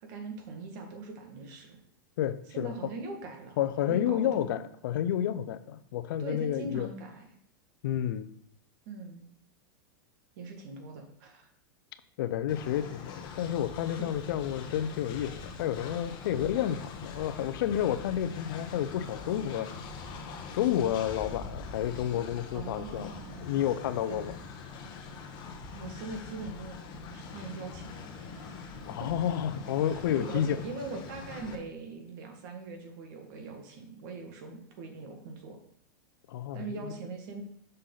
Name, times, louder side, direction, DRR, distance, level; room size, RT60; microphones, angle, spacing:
voice 1, 0.0-1.8 2.5-3.6 3.9-4.6 6.2-7.2 8.9-9.2 10.4-11.5 13.8-14.2 22.5-23.5 24.0-24.3 25.7-26.8 27.1-28.7 29.0-29.1 29.9-35.6 36.5-37.4, right 3 dB, 60° right, 4 dB, 1.7 m, -42 dB
voice 2, 2.2-2.7 3.6-6.9 7.8-8.3 12.2-19.7 20.5-23.1 23.4-24.4 28.9-30.6 36.3-36.9, left 10 dB, 70° left, 13 dB, 0.5 m, -30 dB
Train, 12.5-31.6, left 4 dB, 40° left, 1.0 m, -43 dB
6.5 x 5.6 x 3.9 m, 0.66 s
hypercardioid pair, 130°, 12 cm